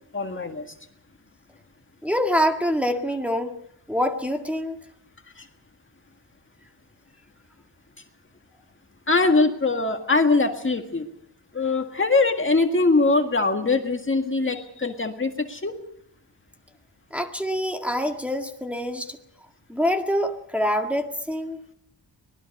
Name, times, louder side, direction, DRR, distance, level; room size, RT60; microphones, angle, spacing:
voice 1, 0.1-0.7 5.4-5.5 9.1-11.1 11.5-15.7, left 3 dB, 30° left, 5 dB, 1.8 m, -22 dB
voice 2, 2.0-3.5 3.9-4.8 17.1-19.2 19.7-21.6, equal, 5° right, 2 dB, 1.9 m, -25 dB
24.5 x 20.0 x 5.4 m, 0.71 s
wide cardioid pair, 130°, 41 cm